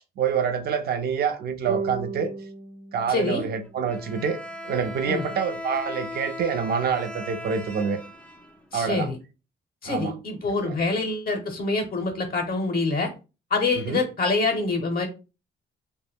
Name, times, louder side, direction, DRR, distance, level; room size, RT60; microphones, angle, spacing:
voice 1, 0.0-2.3 2.9-4.4 4.6-8.0 8.7-9.1 9.9-10.1 10.5-10.8 13.8-14.0, right 6 dB, 55° right, 0.5 m, -27 dB
sound 1, 1.6-4.9, right 5 dB, 80° right, 0.9 m, -36 dB
voice 2, 3.1-3.5 5.1-5.2 8.7-9.2 9.8-13.1 13.5-15.1, left 3 dB, 50° left, 0.6 m, -25 dB
Bowed string instrument, 3.9-8.9, left 1 dB, 5° left, 0.3 m, -38 dB
2.1 x 2.1 x 3.3 m
cardioid pair, 90°, 20 cm